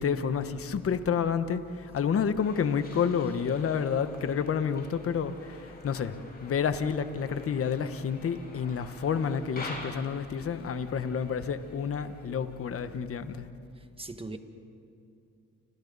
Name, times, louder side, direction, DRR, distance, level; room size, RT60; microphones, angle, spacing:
voice 1, 0.0-13.5, left 7 dB, 50° left, 10 dB, 1.2 m, -29 dB
sound 1, 2.4-12.8, left 2 dB, 30° left, 8.0 m, -48 dB
voice 2, 13.7-14.4, right 2 dB, 20° right, 7 dB, 1.7 m, -40 dB
30.0 x 26.5 x 4.1 m, 2.5 s
cardioid pair, 90°, 30 cm